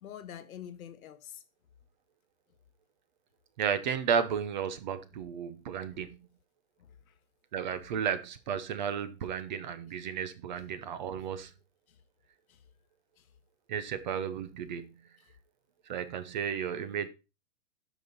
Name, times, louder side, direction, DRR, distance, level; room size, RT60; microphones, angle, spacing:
voice 1, 0.0-1.4 5.9-6.0 6.8-7.1 11.9-12.0 12.5-12.6 13.2-13.3, left 9 dB, 75° left, 1.4 m, -46 dB
voice 2, 3.6-6.1 7.5-11.5 13.7-14.9 15.9-17.1, right 7 dB, 35° right, 0.8 m, -33 dB
12.5 x 5.1 x 4.0 m
hypercardioid pair, 170°, 42 cm